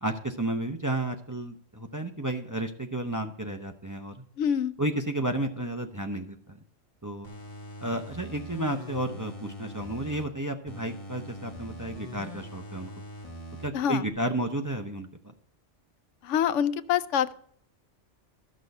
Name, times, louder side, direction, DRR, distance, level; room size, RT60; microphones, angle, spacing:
voice 1, 0.0-4.2 4.8-6.6 7.0-7.3 7.8-13.0 13.6-15.1, right 1 dB, 20° right, 5 dB, 0.5 m, -32 dB
voice 2, 4.4-4.7 13.7-14.1 16.2-17.3, left 9 dB, 90° left, 16 dB, 0.9 m, -26 dB
sound 1, 7.2-10.2 10.7-13.7 14.1-14.2, equal, 30° left, 1.6 m, -42 dB
13.0 x 6.3 x 5.3 m, 0.63 s
omnidirectional pair, 1.2 m